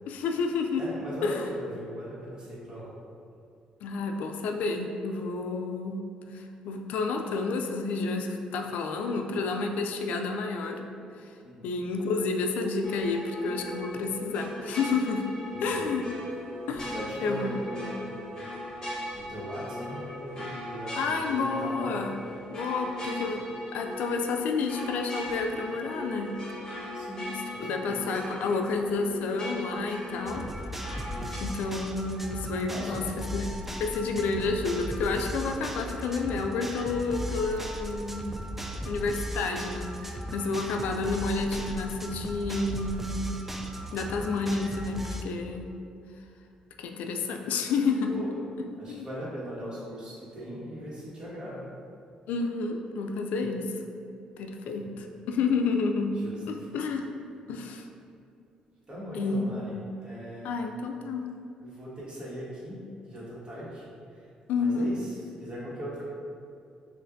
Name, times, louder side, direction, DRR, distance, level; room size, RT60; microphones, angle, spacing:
voice 1, 0.1-0.8 1.2-1.4 3.8-6.0 6.3-10.8 11.6-15.3 15.6-16.0 16.7-16.9 17.2-17.5 21.0-22.2 22.5-23.4 23.7-26.4 27.6-30.4 31.4-33.5 33.8-38.4 38.9-39.9 40.3-43.3 43.9-45.7 46.8-48.1 48.9-49.1 52.3-53.7 54.4-56.1 56.5-57.1 57.5-57.9 59.1-59.5 60.4-61.3 64.5-64.9, left 4 dB, 80° left, 3 dB, 0.3 m, -30 dB
voice 2, 0.8-2.9 11.4-11.8 15.5-15.9 16.9-18.5 18.9-21.9 26.9-28.1 32.7-33.1 40.4-40.8 48.0-48.4 48.8-51.7 54.8-54.9 56.1-56.7 58.9-60.5 61.6-64.3 64.5-66.1, equal, 35° right, -7 dB, 1.5 m, -40 dB
sound 1, 12.8-31.4, left 1 dB, 25° left, 1.4 m, -39 dB
sound 2, 30.3-45.2, equal, 10° right, 0.3 m, -37 dB
5.6 x 2.5 x 2.6 m, 2.5 s
cardioid pair, 85°, 3 cm